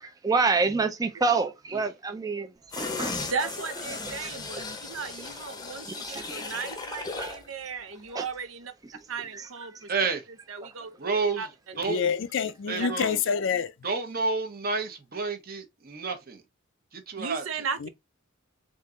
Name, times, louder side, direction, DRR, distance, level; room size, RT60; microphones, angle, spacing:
voice 1, 0.0-3.2 4.2-4.6 5.9-6.5 7.2-7.3 8.1-8.3 9.3-9.5 9.7-9.8, right 4 dB, 20° right, 0.4 m, -28 dB
sound 1, 2.7-7.5 7.8-7.9, left 3 dB, 20° left, 0.6 m, -36 dB
voice 2, 3.2-8.7 9.1-9.9 10.5-11.5 12.8-12.9 17.2-17.9, right 5 dB, 85° right, 0.7 m, -36 dB
voice 3, 9.9-10.3 11.0-11.5 11.8-12.0 12.7-13.2 13.8-16.4 16.9-17.4, right 4 dB, 50° right, 0.9 m, -30 dB
voice 4, 11.9-13.7 17.8-17.9, left 6 dB, 65° left, 0.4 m, -27 dB
3.7 x 2.8 x 3.7 m
head